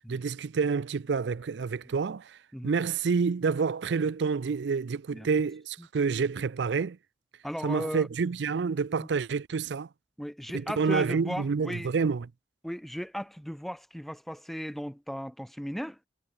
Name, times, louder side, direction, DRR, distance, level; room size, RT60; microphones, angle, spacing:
voice 1, 0.1-2.4 2.6-7.0 7.6-9.9 10.5-12.3, right 5 dB, 75° right, 0.5 m, -28 dB
voice 2, 7.4-8.1 9.0-9.1 10.2-11.9 12.6-16.0, equal, ahead, 0.9 m, -36 dB
head